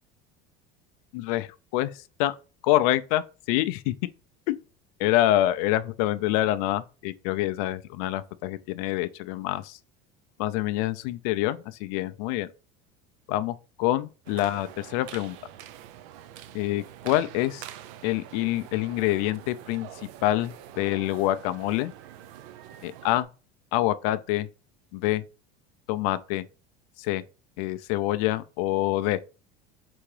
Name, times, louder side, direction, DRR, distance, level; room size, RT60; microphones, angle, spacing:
voice 1, 1.1-1.9 2.2-2.3 2.6-3.9 4.5-4.6 5.0-9.8 10.4-12.5 13.3-15.4 16.5-17.6 18.0-19.9 20.2-21.9 22.8-23.3 23.7-24.5 24.9-25.2 25.9-26.5 27.0-27.2 27.6-29.3, left 15 dB, 70° left, 0.4 m, -26 dB
sound 1, 14.2-23.2, right 11 dB, 65° right, 0.5 m, -45 dB
3.8 x 3.5 x 3.2 m
cardioid pair, 160°, 19 cm